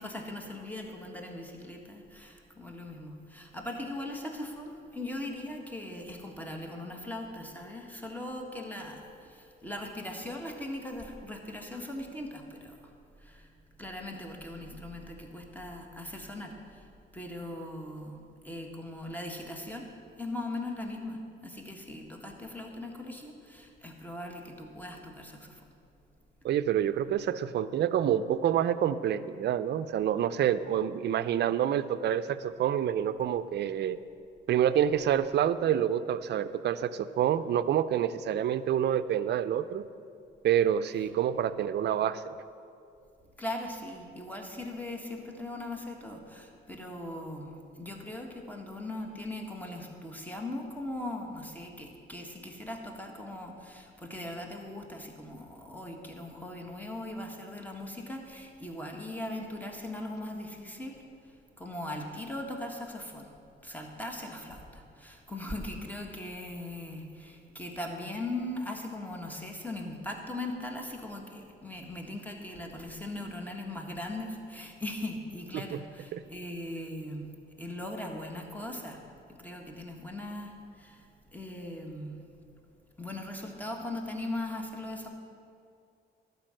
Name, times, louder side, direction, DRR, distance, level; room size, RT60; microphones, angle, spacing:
voice 1, 0.0-12.7 13.2-13.5 13.8-16.8 17.1-18.2 18.4-19.9 20.2-25.5 43.4-61.0 61.6-63.3 63.6-77.3 77.6-79.0 79.4-81.0 81.3-82.2 83.0-85.1, left 1 dB, 10° left, 2 dB, 1.5 m, -39 dB
voice 2, 26.4-34.0 34.5-39.8 40.4-42.4 75.5-75.8 76.1-76.2, right 10 dB, 60° right, 12 dB, 0.5 m, -27 dB
12.0 x 5.5 x 7.6 m, 2.5 s
cardioid pair, 90°, 20 cm